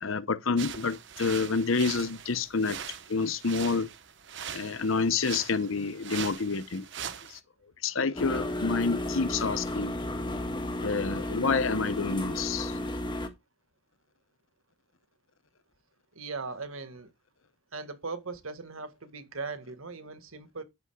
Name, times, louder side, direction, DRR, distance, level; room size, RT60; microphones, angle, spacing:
voice 1, 0.0-2.8 3.1-3.9 4.5-6.9 7.8-9.9 10.8-12.7, left 4 dB, 70° left, 0.8 m, -28 dB
sound 1, 0.6-7.4, right 8 dB, 55° right, 1.1 m, -41 dB
sound 2, 8.2-13.3, left 1 dB, 20° left, 1.6 m, -33 dB
voice 2, 16.1-17.1 17.7-20.6, right 4 dB, 80° right, 1.9 m, -39 dB
11.0 x 10.5 x 2.4 m
head